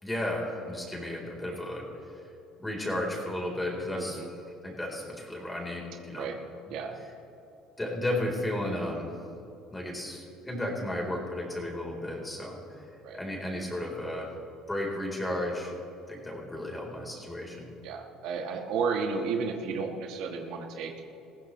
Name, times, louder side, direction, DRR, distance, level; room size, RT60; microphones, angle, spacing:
voice 1, 0.0-1.9 2.6-4.2 4.6-6.3 7.8-9.1 9.7-12.6 13.1-14.3 14.7-15.7 16.1-17.7, left 1 dB, 10° left, -1 dB, 3.9 m, -33 dB
voice 2, 3.9-4.3 6.1-6.4 6.7-6.9 13.0-13.2 17.8-20.9, right 5 dB, 70° right, 3 dB, 1.4 m, -32 dB
20.0 x 15.5 x 3.2 m, 2.8 s
supercardioid pair, 95°, 0 cm